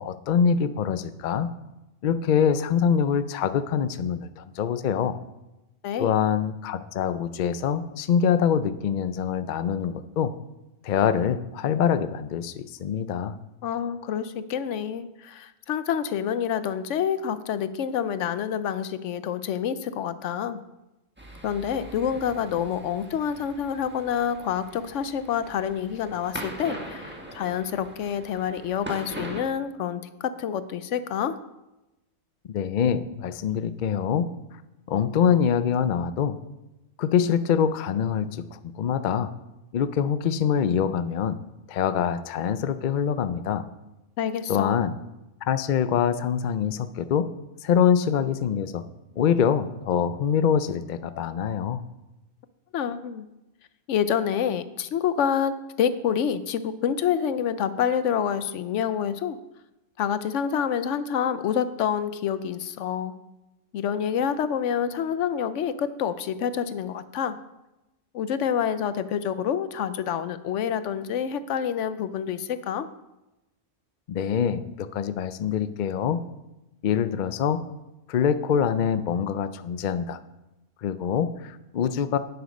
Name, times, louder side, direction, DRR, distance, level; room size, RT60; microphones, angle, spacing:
voice 1, 0.0-1.5 2.0-5.2 6.0-10.3 10.8-13.4 32.5-34.3 34.9-36.4 37.0-39.3 39.7-41.4 41.7-43.6 44.5-44.9 45.5-47.3 47.6-48.8 49.2-51.8 74.1-76.2 76.8-77.6 78.1-80.2 80.8-82.2, left 8 dB, 60° left, 12 dB, 0.5 m, -24 dB
voice 2, 13.6-20.6 21.4-31.4 44.2-44.8 52.7-53.3 53.9-59.4 60.0-63.2 63.7-67.4 68.1-72.9, left 8 dB, 75° left, 13 dB, 0.9 m, -27 dB
sound 1, 21.2-29.4, right 1 dB, 10° right, 1.3 m, -41 dB
9.6 x 7.8 x 5.3 m, 0.97 s
omnidirectional pair, 1.3 m